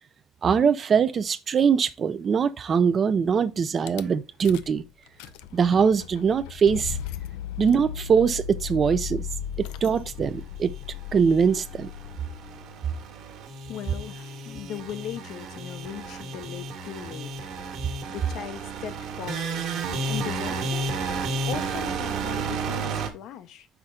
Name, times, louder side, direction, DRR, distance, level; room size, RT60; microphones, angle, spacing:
voice 1, 0.4-4.8 5.5-7.0 7.6-9.2 9.6-10.7 11.1-11.9, right 6 dB, 30° right, 0.5 m, -22 dB
Rattle / Car / Engine starting, 3.9-4.0 4.4-4.8 5.1-12.8, left 9 dB, 85° left, 0.5 m, -36 dB
sound 1, 10.7-23.1, right 3 dB, 55° right, 1.5 m, -32 dB
voice 2, 13.7-17.5 18.1-19.6 20.1-20.9 21.5-23.7, left 10 dB, 55° left, 0.7 m, -38 dB
5.8 x 4.4 x 3.7 m
cardioid pair, 140°, 0 cm